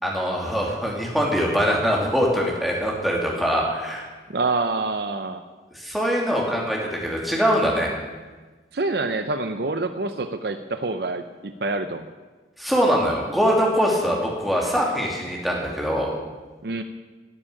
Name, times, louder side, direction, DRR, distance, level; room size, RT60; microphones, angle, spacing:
voice 1, 0.0-4.0 5.7-7.9 12.6-16.1, equal, ahead, -3 dB, 2.8 m, -23 dB
voice 2, 4.3-5.4 8.7-12.1 16.6-16.8, right 3 dB, 60° right, 9 dB, 0.7 m, -26 dB
13.5 x 7.4 x 10.0 m, 1.3 s
head